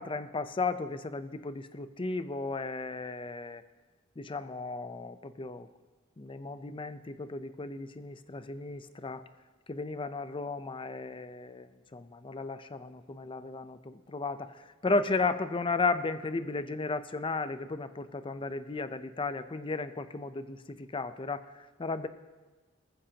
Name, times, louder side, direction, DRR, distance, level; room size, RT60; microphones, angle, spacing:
voice 1, 0.0-3.6 4.2-5.7 6.2-9.2 9.7-22.1, left 3 dB, 25° left, 12 dB, 0.6 m, -34 dB
19.5 x 14.5 x 2.9 m, 1.3 s
head